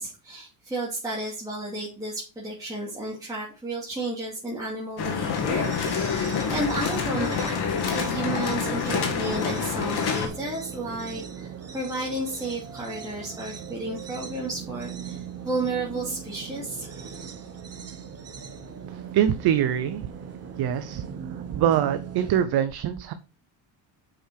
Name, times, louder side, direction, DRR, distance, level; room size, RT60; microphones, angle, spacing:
voice 1, 0.0-7.6 7.9-17.3 18.9-19.1, right 2 dB, 10° right, -6 dB, 2.7 m, -33 dB
sound 1, 5.0-10.3, left 6 dB, 65° left, 2.6 m, -27 dB
sound 2, 5.3-22.4, right 7 dB, 35° right, 1.4 m, -39 dB
voice 2, 18.9-20.3 20.6-23.1, right 10 dB, 60° right, 10 dB, 0.7 m, -25 dB
6.7 x 6.2 x 4.7 m, 0.35 s
cardioid pair, 125°, 43 cm